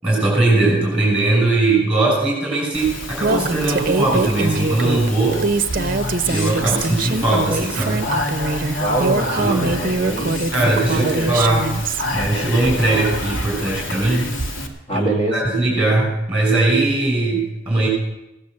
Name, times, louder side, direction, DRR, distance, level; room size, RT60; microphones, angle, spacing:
voice 1, 0.0-5.4 6.2-8.1 9.4-9.7 10.5-11.7 12.1-14.3 14.9-17.9, right 2 dB, 5° right, -3 dB, 6.1 m, -19 dB
Speech, 2.7-14.7, left 1 dB, 80° left, 2.1 m, -27 dB
Female speech woman speaking, 3.2-12.0, right 3 dB, 45° right, 0.7 m, -23 dB
voice 2, 8.8-10.3 10.9-11.4 14.9-15.5, right 1 dB, 35° left, 1 dB, 2.1 m, -24 dB
16.5 x 10.0 x 7.5 m, 0.94 s
head